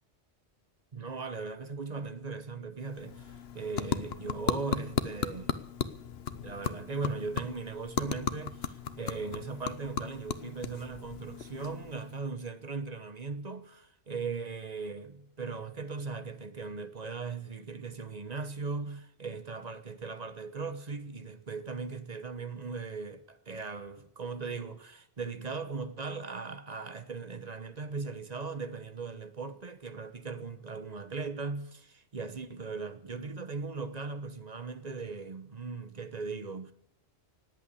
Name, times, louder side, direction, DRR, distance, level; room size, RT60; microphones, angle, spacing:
voice 1, 0.9-5.6 6.4-36.7, right 4 dB, 40° right, 1.1 m, -38 dB
sound 1, 2.8-12.2, left 7 dB, 65° left, 1.1 m, -36 dB
18.5 x 8.4 x 8.4 m
omnidirectional pair, 1.1 m